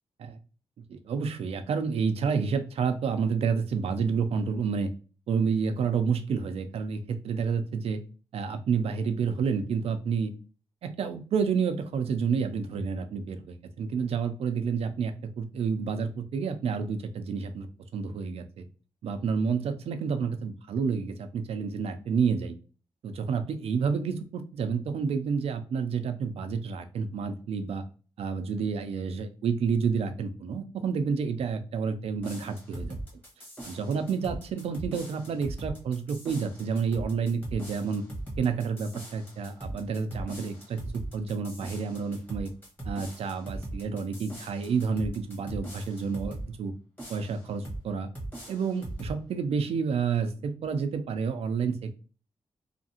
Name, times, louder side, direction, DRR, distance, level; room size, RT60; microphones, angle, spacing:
voice 1, 0.9-4.9 5.3-8.0 8.3-10.3 10.8-18.7 19.0-22.5 23.0-27.8 28.2-33.0 33.6-38.0 38.4-42.5 42.8-46.7 47.1-48.1 48.5-52.0, right 5 dB, 80° right, 8 dB, 0.4 m, -29 dB
sound 1, 32.2-46.5 47.0-47.8 48.1-49.2, right 1 dB, 20° left, 1.3 m, -40 dB
2.7 x 2.5 x 2.7 m, 0.37 s
cardioid pair, 95°, 10 cm